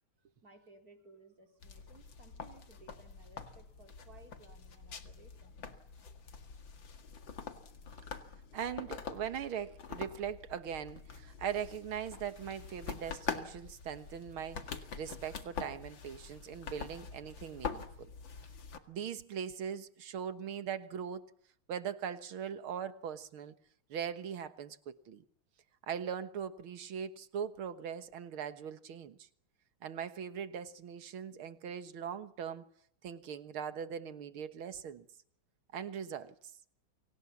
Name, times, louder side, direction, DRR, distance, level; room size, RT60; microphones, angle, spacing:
voice 1, 0.4-5.6, right 3 dB, 45° right, 4.5 m, -60 dB
sound 1, 1.6-18.8, left 6 dB, 65° left, 2.7 m, -45 dB
voice 2, 8.5-18.1 18.9-21.3 21.7-23.6 23.9-25.2 25.9-29.3 29.8-32.6 33.0-35.1 35.7-36.3, right 8 dB, 85° right, 2.2 m, -40 dB
29.5 x 25.0 x 7.3 m
omnidirectional pair, 2.2 m